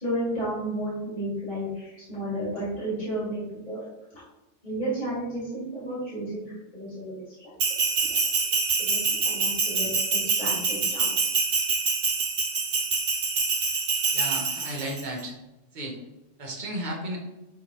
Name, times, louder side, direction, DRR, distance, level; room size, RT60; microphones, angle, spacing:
voice 1, 0.0-3.8 4.1-4.2 4.6-7.8 8.1-8.2 8.8-11.1, right 1 dB, 40° left, -9 dB, 2.6 m, -33 dB
Bell, 7.6-15.0, right 4 dB, 65° right, 1.3 m, -26 dB
voice 2, 14.1-15.3 15.7-16.0 16.4-17.2, right 1 dB, 40° right, 0 dB, 1.3 m, -33 dB
10.5 x 3.6 x 3.1 m, 0.99 s
omnidirectional pair, 1.3 m